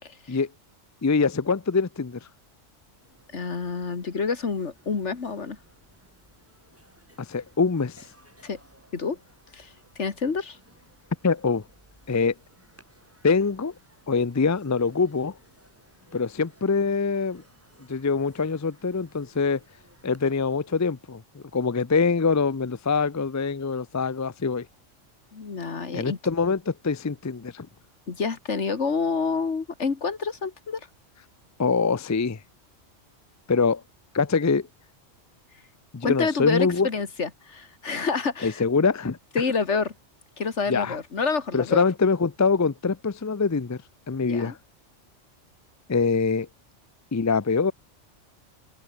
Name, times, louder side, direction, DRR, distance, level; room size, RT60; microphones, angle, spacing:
voice 1, 0.0-0.4 3.3-5.6 8.4-8.6 8.9-9.2 9.5-10.6 25.3-26.2 28.1-30.9 36.0-38.6 39.3-39.9 40.4-41.8 44.2-44.6, left 5 dB, 70° left, 2.2 m, -28 dB
voice 2, 1.0-2.2 7.2-8.0 11.2-11.6 12.1-12.3 13.2-13.7 14.1-15.3 16.1-17.4 17.9-19.6 20.0-24.7 25.9-27.7 31.6-32.4 33.5-33.8 34.1-34.7 35.9-36.9 38.4-39.2 40.7-41.0 41.5-43.8 44.1-44.6 45.9-46.5 47.1-47.7, left 4 dB, 25° left, 0.3 m, -24 dB
sound 1, 2.9-20.3, equal, 10° right, 6.6 m, -59 dB
open air
omnidirectional pair, 1.3 m